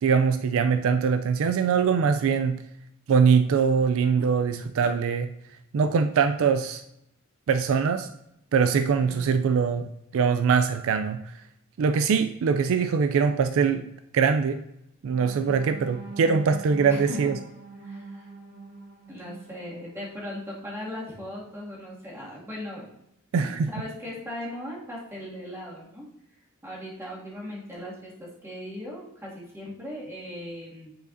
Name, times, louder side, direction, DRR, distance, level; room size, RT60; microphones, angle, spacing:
voice 1, 0.0-2.6 3.1-5.3 5.7-6.8 7.5-8.1 8.5-11.2 11.8-13.8 14.1-14.6 15.0-17.3 23.3-23.7, right 6 dB, 65° right, 9 dB, 0.3 m, -22 dB
voice 2, 9.0-9.3 16.9-17.3 17.8-18.3 19.1-22.9 23.4-26.0 26.6-30.9, left 1 dB, 10° right, -6 dB, 2.1 m, -38 dB
sound 1, 15.1-21.0 21.5-21.7 22.0-22.3, right 3 dB, 50° right, 2.0 m, -43 dB
9.2 x 4.9 x 2.6 m, 0.81 s
head